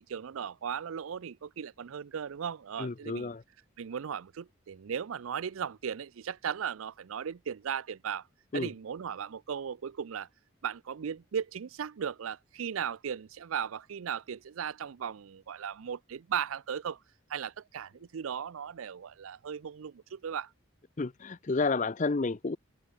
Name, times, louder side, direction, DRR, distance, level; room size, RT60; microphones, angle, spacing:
voice 1, 0.0-3.3 3.8-8.3 8.5-10.3 10.6-17.0 17.3-20.5, right 7 dB, 85° right, 0.5 m, -37 dB
voice 2, 2.8-3.4 8.5-8.7 21.0-22.6, left 3 dB, 35° left, 0.5 m, -30 dB
open air
head